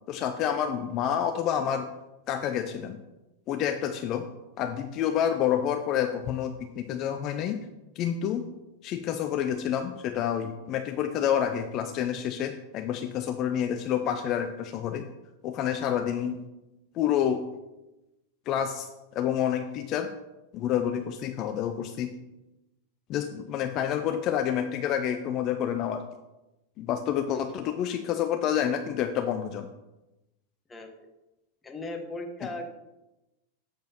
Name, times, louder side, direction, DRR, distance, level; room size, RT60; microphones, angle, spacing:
voice 1, 0.1-1.9 2.3-3.0 3.5-4.3 4.6-7.6 8.0-8.5 8.8-15.1 15.4-16.4 16.9-17.4 18.5-18.9 19.2-20.1 20.5-22.1 23.1-26.0 26.8-29.7, left 9 dB, 35° left, 7 dB, 0.5 m, -28 dB
voice 2, 30.7-31.1 31.6-32.7, left 2 dB, 15° left, 4 dB, 1.2 m, -38 dB
7.8 x 5.1 x 5.7 m, 1.0 s
figure-of-eight pair, 90°, 0 cm